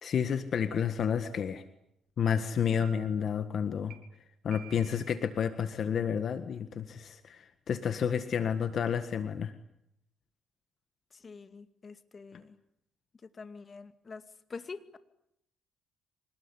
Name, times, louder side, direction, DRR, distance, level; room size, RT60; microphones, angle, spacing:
voice 1, 0.0-1.6 2.2-4.0 4.4-9.5, left 7 dB, 60° left, 9 dB, 1.7 m, -30 dB
sound 1, 0.7-0.8 1.2-1.6 2.3-2.4 2.8-3.3 3.9-4.0 4.5-5.1, right 10 dB, 70° right, 4.5 m, -51 dB
voice 2, 11.1-12.5 13.2-14.2 14.5-15.0, left 4 dB, 35° left, 9 dB, 2.2 m, -45 dB
26.0 x 19.5 x 10.0 m, 0.79 s
cardioid pair, 90°, 0 cm